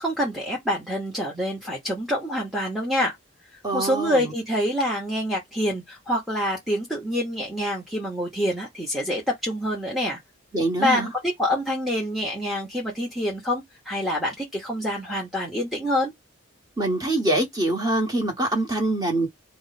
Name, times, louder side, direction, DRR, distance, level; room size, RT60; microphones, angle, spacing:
voice 1, 0.0-3.2 3.7-10.2 10.8-11.1 11.4-16.1, equal, ahead, 0.8 m, -26 dB
voice 2, 3.6-4.3 10.5-11.1 16.8-19.3, right 2 dB, 20° right, 1.1 m, -24 dB
4.2 x 2.1 x 4.1 m
head